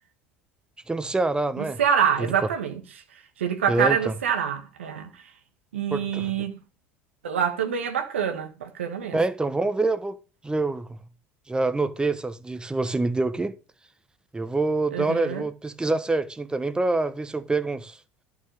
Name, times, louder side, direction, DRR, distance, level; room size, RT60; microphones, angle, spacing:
voice 1, 0.9-1.8 2.2-2.5 3.7-4.1 5.9-6.3 9.1-10.2 10.4-11.0 11.5-13.5 14.3-18.0, right 3 dB, 15° right, 1.2 m, -26 dB
voice 2, 1.6-2.8 3.4-5.2 5.7-6.6 7.2-9.2 14.9-15.4, right 8 dB, 85° right, 1.5 m, -26 dB
11.5 x 6.0 x 6.6 m
hypercardioid pair, 70°, 6 cm